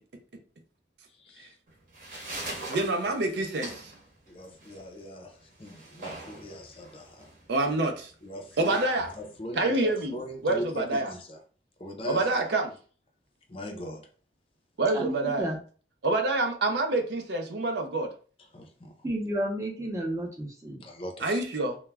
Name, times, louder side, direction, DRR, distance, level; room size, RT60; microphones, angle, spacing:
voice 1, 1.1-1.6 2.1-2.8 4.3-7.3 8.2-8.8 9.2-11.4 11.8-12.3 13.5-14.1 18.5-18.9 20.8-21.4, equal, 30° left, 0.4 m, -40 dB
sound 1, 1.7-10.7, right 2 dB, 45° right, 0.9 m, -43 dB
voice 2, 2.7-3.9 7.5-8.1 8.6-9.1 9.6-10.1 10.4-11.1 12.1-12.7 14.8-15.5 16.0-18.1 21.2-21.8, right 2 dB, 70° right, 0.5 m, -27 dB
voice 3, 14.9-15.6 19.0-20.8, right 1 dB, 15° right, 0.6 m, -31 dB
2.2 x 2.1 x 3.3 m
head